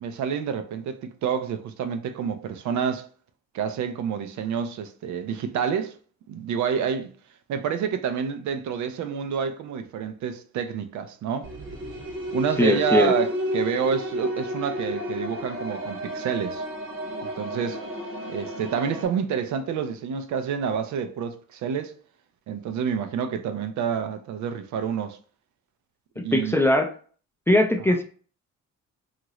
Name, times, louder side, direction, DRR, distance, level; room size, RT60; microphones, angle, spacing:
voice 1, 0.0-3.1 3.5-6.0 6.3-7.1 7.5-11.5 12.3-16.6 17.2-17.8 18.3-21.9 22.5-25.2 26.2-26.6, right 7 dB, 70° right, 0.5 m, -28 dB
sound 1, 11.4-19.1, equal, 45° right, 0.9 m, -32 dB
voice 2, 12.6-13.1 26.2-26.9 27.5-28.0, left 1 dB, 10° left, 0.4 m, -20 dB
2.9 x 2.5 x 2.9 m
cardioid pair, 90°, 30 cm